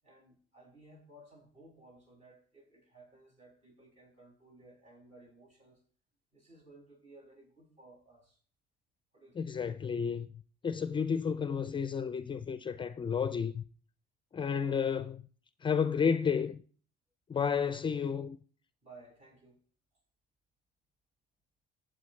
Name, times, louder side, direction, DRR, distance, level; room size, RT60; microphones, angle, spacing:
voice 1, 0.0-5.8 6.3-8.4 9.1-9.4 18.8-19.6, right 2 dB, 45° right, 6.9 m, -57 dB
voice 2, 9.4-10.3 10.6-13.6 14.3-15.2 15.6-16.6 17.3-18.4, left 6 dB, 30° left, 0.5 m, -31 dB
18.0 x 7.6 x 3.2 m
cardioid pair, 110°, 17 cm